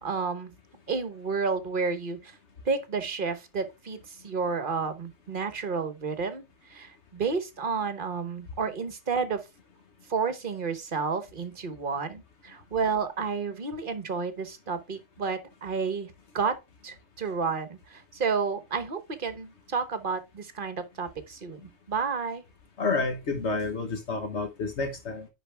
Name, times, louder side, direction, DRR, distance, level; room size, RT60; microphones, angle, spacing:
voice 1, 0.0-0.5 0.9-2.3 2.6-6.4 6.7-9.4 10.1-21.6 21.9-22.4, right 5 dB, 50° right, 1.3 m, -31 dB
voice 2, 22.8-25.3, left 3 dB, 75° left, 1.5 m, -29 dB
10.0 x 4.3 x 3.4 m
omnidirectional pair, 1.2 m